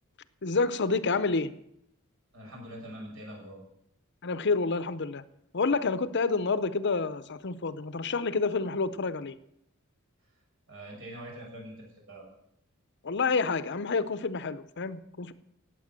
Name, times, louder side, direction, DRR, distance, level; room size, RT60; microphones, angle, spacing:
voice 1, 0.4-1.5 4.2-5.2 5.5-9.4 13.0-15.3, left 4 dB, 55° left, 14 dB, 0.8 m, -28 dB
voice 2, 2.3-3.6 10.7-12.3, right 1 dB, 65° right, -1 dB, 7.0 m, -44 dB
18.0 x 8.3 x 7.6 m, 0.76 s
head